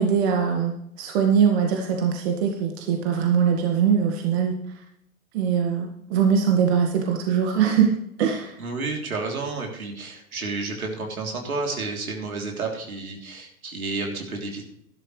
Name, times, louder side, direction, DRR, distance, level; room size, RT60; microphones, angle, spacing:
voice 1, 0.0-4.5 5.3-7.9 8.2-8.5, right 7 dB, 50° right, 2 dB, 1.9 m, -22 dB
voice 2, 8.6-14.6, right 3 dB, 80° right, 1 dB, 3.5 m, -31 dB
12.5 x 12.0 x 3.3 m, 0.74 s
hypercardioid pair, 115°, 42 cm